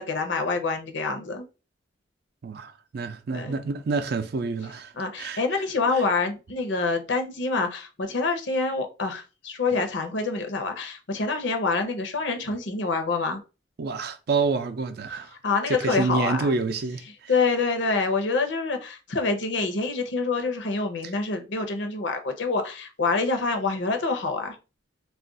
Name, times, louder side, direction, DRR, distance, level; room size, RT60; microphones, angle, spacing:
voice 1, 0.0-1.5 3.3-3.6 5.0-13.4 15.4-16.5 17.3-24.6, left 4 dB, 70° left, 0.7 m, -26 dB
voice 2, 2.4-5.6 5.9-6.1 13.8-15.3 15.7-17.3 21.0-21.1, right 4 dB, 55° right, 0.4 m, -28 dB
2.4 x 2.2 x 3.7 m
head